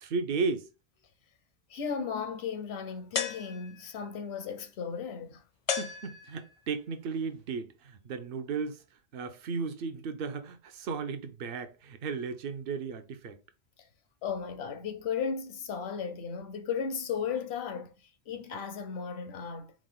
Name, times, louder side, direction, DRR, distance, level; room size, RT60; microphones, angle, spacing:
voice 1, 0.0-0.7 5.8-8.8 9.1-13.4, right 5 dB, 65° right, 0.8 m, -35 dB
voice 2, 1.7-5.4 14.2-17.9 18.3-19.7, left 6 dB, 75° left, 0.9 m, -35 dB
sound 1, 3.1-4.0 5.7-6.7, left 7 dB, 50° left, 0.4 m, -34 dB
4.7 x 2.1 x 3.8 m
omnidirectional pair, 1.1 m